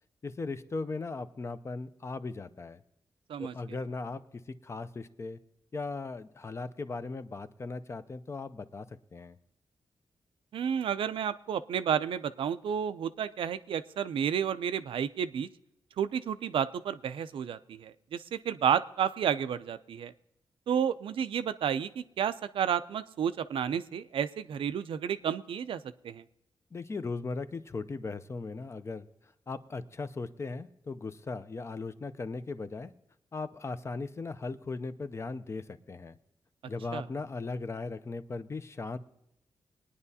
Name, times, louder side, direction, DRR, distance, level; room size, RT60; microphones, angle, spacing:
voice 1, 0.2-2.8 3.4-5.4 5.7-9.4 26.7-29.0 29.5-32.9 33.3-36.2 36.7-39.0, left 3 dB, 30° left, 12 dB, 0.5 m, -38 dB
voice 2, 10.5-15.5 16.0-20.1 20.7-26.2 36.9-37.0, right 8 dB, 85° right, 13 dB, 0.4 m, -31 dB
21.5 x 9.8 x 2.8 m, 0.83 s
wide cardioid pair, 130°, 9 cm